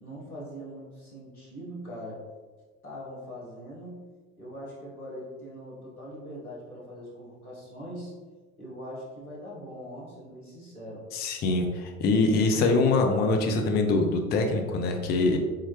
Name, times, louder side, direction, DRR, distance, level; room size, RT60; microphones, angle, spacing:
voice 1, 0.0-2.2 2.8-4.0 4.4-8.1 8.6-11.0, equal, 90° left, -6 dB, 1.3 m, -41 dB
voice 2, 11.1-15.4, left 3 dB, 25° left, 4 dB, 0.5 m, -24 dB
4.3 x 3.6 x 2.9 m, 1.3 s
figure-of-eight pair, 70°, 43 cm